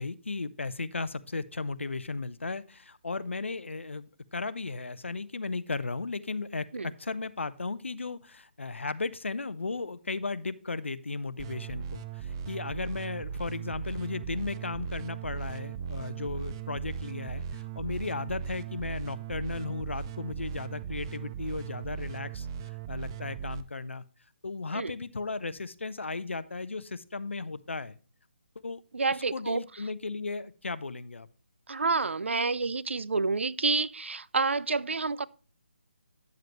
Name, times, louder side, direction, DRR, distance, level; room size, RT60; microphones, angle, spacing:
voice 1, 0.0-24.0 24.4-28.0 28.6-28.8 29.3-31.3, left 3 dB, 85° left, 0.7 m, -35 dB
sound 1, 11.4-23.6, right 7 dB, 25° right, 0.4 m, -38 dB
voice 2, 28.9-29.6 31.7-35.3, right 4 dB, 85° right, 0.5 m, -28 dB
9.3 x 7.5 x 3.0 m
figure-of-eight pair, 155°, 6 cm